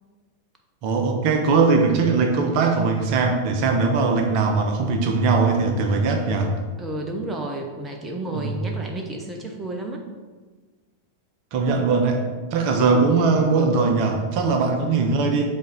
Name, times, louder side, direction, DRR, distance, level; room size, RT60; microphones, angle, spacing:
voice 1, 0.8-6.5 8.3-8.5 11.5-12.2 12.5-15.5, right 4 dB, 45° right, 4 dB, 0.8 m, -20 dB
voice 2, 6.8-10.0, right 2 dB, 15° right, 2 dB, 0.7 m, -31 dB
7.9 x 3.7 x 3.5 m, 1.4 s
figure-of-eight pair, 90°, 0 cm